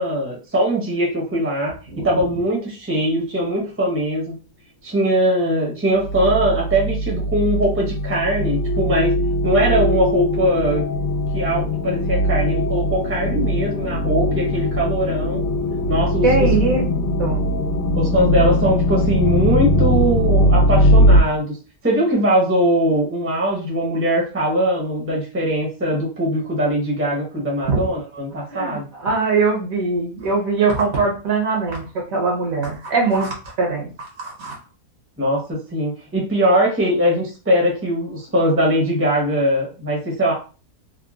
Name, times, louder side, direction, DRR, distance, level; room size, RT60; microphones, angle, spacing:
voice 1, 0.0-4.4 4.8-9.2 9.4-10.8 11.3-15.4 15.9-16.5 18.0-21.6 21.8-28.9 35.2-40.3, equal, 10° right, -3 dB, 0.7 m, -21 dB
sound 1, 6.0-21.2, equal, 65° left, 0.6 m, -20 dB
voice 2, 16.2-16.9 17.2-17.4 27.7-27.8 28.5-34.6, right 4 dB, 65° right, 0 dB, 1.3 m, -21 dB
3.6 x 2.2 x 2.3 m, 0.35 s
omnidirectional pair, 1.6 m